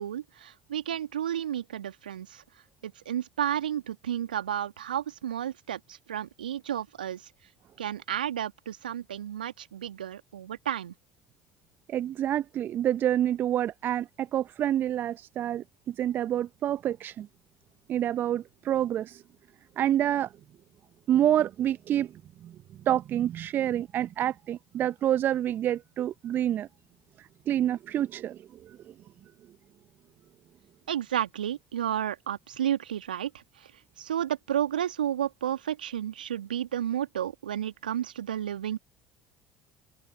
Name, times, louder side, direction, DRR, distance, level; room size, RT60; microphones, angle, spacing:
voice 1, 0.0-2.4 2.8-7.3 7.8-10.9 30.9-33.7 34.0-38.8, right 10 dB, 80° right, 1.7 m, -32 dB
voice 2, 11.9-17.3 17.9-19.2 19.8-20.3 21.1-22.1 22.4-22.6 22.8-26.7 27.2-28.9, right 11 dB, 45° right, 0.7 m, -28 dB
open air
figure-of-eight pair, 60°, 5 cm